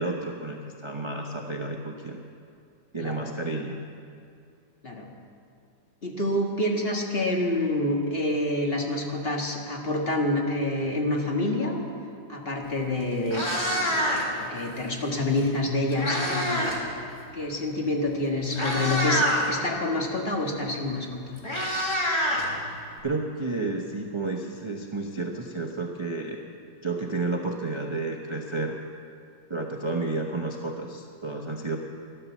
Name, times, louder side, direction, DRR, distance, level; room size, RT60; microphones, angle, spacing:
voice 1, 0.0-2.2 2.9-3.8 23.0-26.4 26.8-28.7 29.5-31.8, right 3 dB, 45° right, 1 dB, 0.3 m, -31 dB
voice 2, 6.0-11.9 12.3-16.7 17.3-21.4, left 1 dB, 30° left, 0 dB, 1.8 m, -27 dB
Meow, 12.7-12.8 13.1-14.4 15.5-16.8 17.1-17.4 18.1-18.2 18.5-19.4 20.8-20.9 21.1-23.0, equal, 15° left, 2.1 m, -26 dB
13.0 x 12.0 x 7.2 m, 2.5 s
omnidirectional pair, 2.2 m